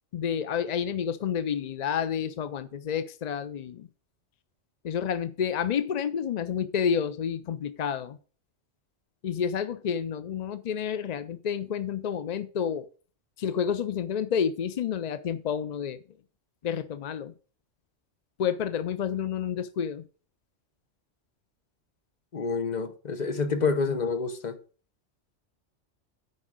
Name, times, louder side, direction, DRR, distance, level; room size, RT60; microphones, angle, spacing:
voice 1, 0.1-3.9 4.8-8.2 9.2-12.9 13.4-16.0 16.6-17.3 18.4-20.0, left 7 dB, 60° left, 0.4 m, -29 dB
voice 2, 22.3-24.6, left 4 dB, 40° left, 1.0 m, -28 dB
9.5 x 4.8 x 6.3 m
omnidirectional pair, 1.3 m